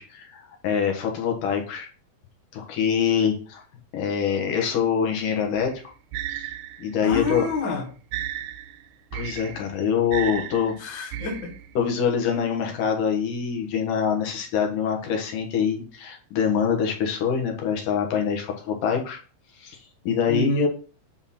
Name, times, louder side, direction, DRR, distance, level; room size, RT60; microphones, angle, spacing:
voice 1, 0.0-1.9 2.5-3.6 3.9-5.7 6.3-6.5 6.8-7.5 9.1-10.8 11.8-19.2 19.6-19.8 20.0-20.7, left 7 dB, 75° left, 1 dB, 2.9 m, -25 dB
sound 1, 5.6-11.9, right 12 dB, 80° right, 1.9 m, -35 dB
voice 2, 7.0-7.9 10.8-11.5 20.3-20.7, left 4 dB, 50° left, 2 dB, 1.6 m, -27 dB
9.0 x 3.8 x 4.2 m, 0.38 s
omnidirectional pair, 3.7 m